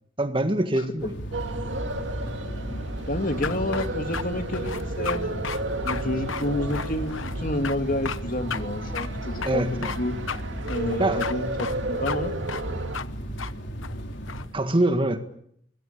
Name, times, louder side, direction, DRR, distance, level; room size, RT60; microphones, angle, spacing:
voice 1, 0.2-1.1 9.4-9.9 11.0-11.2 14.5-15.2, right 1 dB, 25° right, 8 dB, 1.7 m, -24 dB
sound 1, 1.0-14.5, right 1 dB, 65° left, 5.9 m, -35 dB
sound 2, 1.3-13.0, right 2 dB, 65° right, 2.2 m, -33 dB
voice 2, 2.6-5.3 5.8-10.2 10.7-11.5 11.9-12.3, left 1 dB, 45° left, 6 dB, 2.8 m, -29 dB
sound 3, 3.4-4.2 4.5-5.2 5.4-5.6 5.9-6.0 6.3-7.4 7.6-7.8 8.0-8.2 8.5-8.6 8.9-9.1 9.4-10.0 10.3-10.4 10.7-11.3 11.6-11.8 12.0-12.2 12.5-12.6 12.9-13.1 13.4-13.5 13.8-14.5, left 6 dB, 85° left, 1.0 m, -33 dB
26.5 x 21.5 x 8.5 m, 0.71 s
head